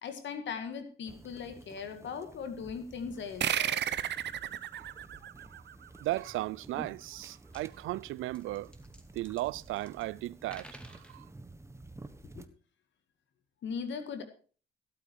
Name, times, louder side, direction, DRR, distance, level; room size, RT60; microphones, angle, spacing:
voice 1, 0.0-3.8 12.4-12.5 13.6-14.2, left 6 dB, 70° left, 1.9 m, -39 dB
sound 1, 1.0-12.5, right 2 dB, 15° right, 1.2 m, -52 dB
sound 2, 3.4-6.4, right 10 dB, 60° right, 0.8 m, -33 dB
voice 2, 6.0-8.7 9.1-11.3, right 17 dB, 85° right, 0.5 m, -36 dB
sound 3, 7.1-7.2 7.4-7.6 8.2-10.1 10.4-11.2, equal, 5° left, 2.3 m, -53 dB
16.0 x 8.8 x 4.6 m
cardioid pair, 90°, 20 cm